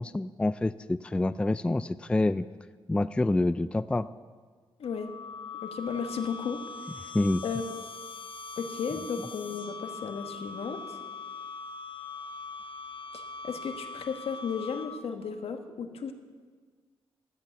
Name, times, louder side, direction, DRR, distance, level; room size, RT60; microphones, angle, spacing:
voice 1, 0.0-2.5 2.9-4.1 7.1-7.4, left 2 dB, 10° left, 14 dB, 0.3 m, -27 dB
sound 1, 4.8-15.2, left 4 dB, 55° left, 1.0 m, -42 dB
voice 2, 5.6-6.6 6.9-7.1 7.4-7.6 8.6-11.0 13.1-16.1, left 6 dB, 75° left, 6 dB, 1.4 m, -34 dB
13.5 x 8.2 x 9.2 m, 1.5 s
cardioid pair, 100°, 10 cm